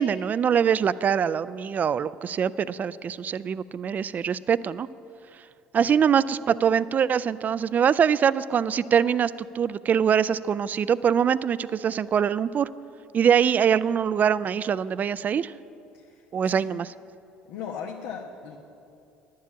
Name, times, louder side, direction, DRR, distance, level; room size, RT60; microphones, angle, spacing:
voice 1, 0.0-4.9 5.7-12.7 13.1-15.5 16.3-16.9, right 7 dB, 40° right, 17 dB, 0.4 m, -23 dB
voice 2, 15.9-16.7 17.5-18.6, left 7 dB, 70° left, 0 dB, 1.0 m, -38 dB
11.0 x 7.6 x 8.5 m, 2.7 s
hypercardioid pair, 60°, 4 cm